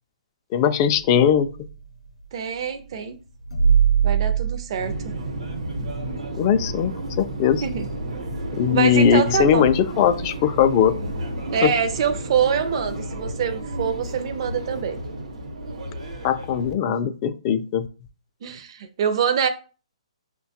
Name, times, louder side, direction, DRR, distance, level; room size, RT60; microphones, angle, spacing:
voice 1, 0.5-1.5 6.4-7.6 8.5-11.0 11.6-11.7 16.2-17.9, left 8 dB, 30° left, 0.3 m, -20 dB
sound 1, 0.7-1.9 3.4-6.0 6.5-6.6 9.6-9.8, right 7 dB, 85° left, 0.6 m, -22 dB
voice 2, 2.3-3.2 4.0-4.9 7.6-7.9 8.7-9.7 11.5-15.0 16.8-16.9 18.4-19.5, right 7 dB, 50° right, 0.4 m, -25 dB
Subway metro underground, 4.8-16.7, right 1 dB, 85° right, 0.9 m, -32 dB
5.5 x 2.2 x 2.7 m
hypercardioid pair, 145°, 4 cm